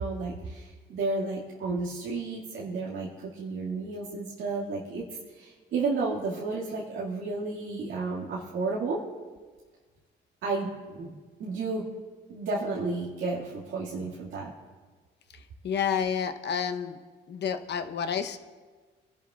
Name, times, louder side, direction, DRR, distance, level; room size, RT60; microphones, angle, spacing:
voice 1, 0.0-5.0 5.4-9.0 10.4-11.8 12.3-14.5, right 3 dB, 80° right, -6 dB, 2.1 m, -32 dB
voice 2, 15.3-17.0 17.3-18.4, left 7 dB, 60° left, 7 dB, 0.9 m, -30 dB
25.0 x 11.5 x 2.4 m, 1.4 s
cardioid pair, 90°, 20 cm